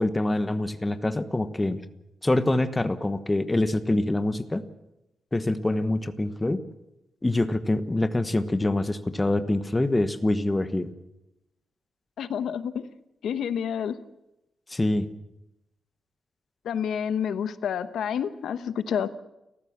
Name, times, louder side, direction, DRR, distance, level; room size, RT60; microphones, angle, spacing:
voice 1, 0.0-1.8 2.2-4.6 5.3-6.6 7.2-10.9 14.7-15.1, left 2 dB, 15° left, 10 dB, 1.2 m, -25 dB
voice 2, 12.2-12.9 13.2-14.0 16.6-19.1, left 8 dB, 85° left, 12 dB, 1.1 m, -29 dB
30.0 x 14.5 x 7.3 m, 0.89 s
wide cardioid pair, 140°, 0 cm